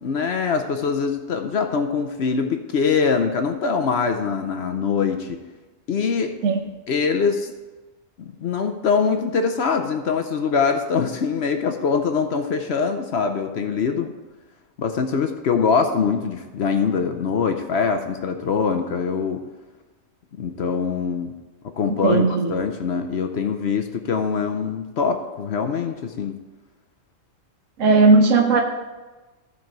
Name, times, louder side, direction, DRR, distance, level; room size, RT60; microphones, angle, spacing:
voice 1, 0.0-5.4 5.9-6.3 6.9-7.5 8.2-14.1 14.8-19.4 20.3-21.3 21.8-26.4, left 5 dB, 60° left, 6 dB, 0.9 m, -23 dB
voice 2, 22.0-22.5 27.8-28.6, right 3 dB, 75° right, 2 dB, 1.2 m, -16 dB
14.0 x 4.8 x 4.5 m, 1.2 s
omnidirectional pair, 1.3 m